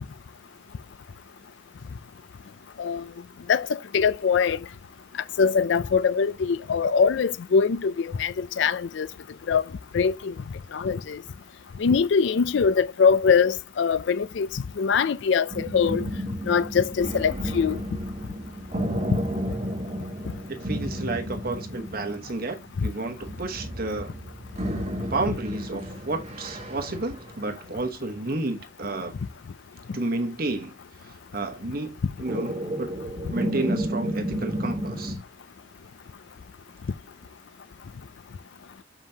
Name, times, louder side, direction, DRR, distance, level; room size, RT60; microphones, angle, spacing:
voice 1, 3.5-4.6 5.4-9.1 9.5-9.7 9.9-10.3 10.7-11.2 11.8-16.0 16.5-17.8, left 6 dB, 65° left, 0.4 m, -23 dB
sound 1, 15.5-27.8 32.2-35.1, equal, 35° right, 1.5 m, -32 dB
voice 2, 20.5-24.1 25.1-29.1 29.9-30.7 31.0-32.9 33.3-35.2, right 2 dB, 50° right, 1.1 m, -31 dB
7.4 x 5.0 x 2.8 m
head